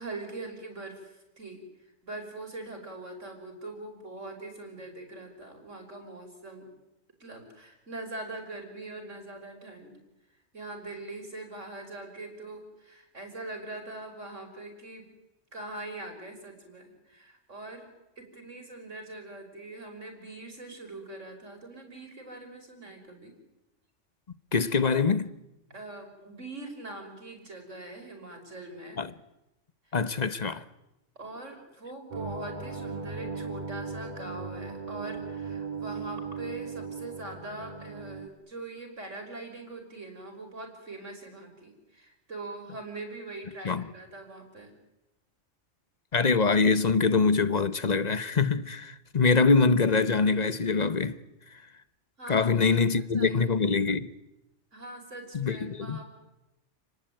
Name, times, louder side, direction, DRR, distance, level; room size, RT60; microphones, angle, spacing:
voice 1, 0.0-1.6 2.0-6.7 7.2-10.0 10.5-15.1 15.5-17.8 18.2-23.3 25.7-29.0 29.9-30.0 31.2-44.8 52.2-53.4 54.7-56.1, right 2 dB, 80° right, 6.0 m, -42 dB
voice 2, 24.5-25.3 29.0-29.1 29.9-30.6 43.6-43.8 46.1-51.2 52.3-54.1 55.3-56.0, left 4 dB, 35° left, 1.1 m, -24 dB
sound 1, 32.1-38.3, right 4 dB, 40° right, 1.7 m, -37 dB
29.5 x 19.5 x 9.2 m
omnidirectional pair, 1.3 m